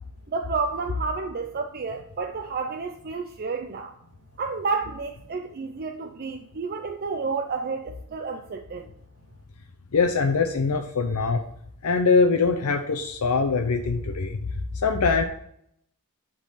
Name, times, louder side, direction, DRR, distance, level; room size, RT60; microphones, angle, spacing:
voice 1, 0.3-3.9 4.4-8.9, right 4 dB, 45° right, 4 dB, 0.5 m, -30 dB
voice 2, 9.9-11.4 11.8-14.4 14.7-15.2, left 4 dB, 75° left, 5 dB, 0.6 m, -22 dB
10.0 x 3.8 x 4.1 m, 0.71 s
head